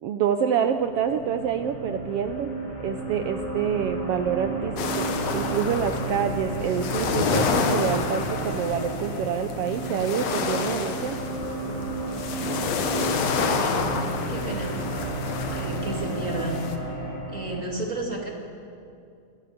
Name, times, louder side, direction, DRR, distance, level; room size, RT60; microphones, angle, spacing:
voice 1, 0.0-2.5 2.8-11.2, right 8 dB, 75° right, 7 dB, 1.4 m, -27 dB
sound 1, 0.6-17.6, right 2 dB, 90° left, 7.8 m, -32 dB
sound 2, 4.8-16.8, left 5 dB, 65° left, 2.4 m, -29 dB
voice 2, 13.2-14.9 15.5-16.6 17.3-18.3, right 2 dB, 30° right, 0 dB, 2.2 m, -32 dB
28.0 x 11.0 x 8.6 m, 2.5 s
omnidirectional pair, 3.5 m